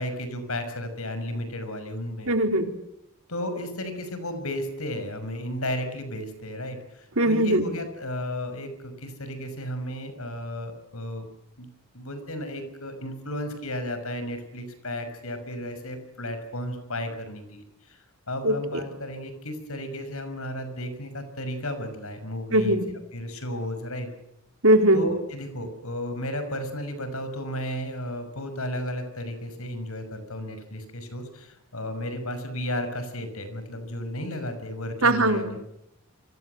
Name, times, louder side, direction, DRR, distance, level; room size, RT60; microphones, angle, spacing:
voice 1, 0.0-2.3 3.3-11.3 11.6-11.7 11.9-18.0 18.3-22.8 23.1-24.1 24.9-35.6, left 1 dB, 80° left, 9 dB, 6.1 m, -33 dB
voice 2, 2.3-2.7 7.2-7.6 18.4-18.5 22.5-22.8 24.6-25.0 35.0-35.6, right 1 dB, 70° right, 6 dB, 3.6 m, -20 dB
28.5 x 24.0 x 8.2 m, 0.81 s
head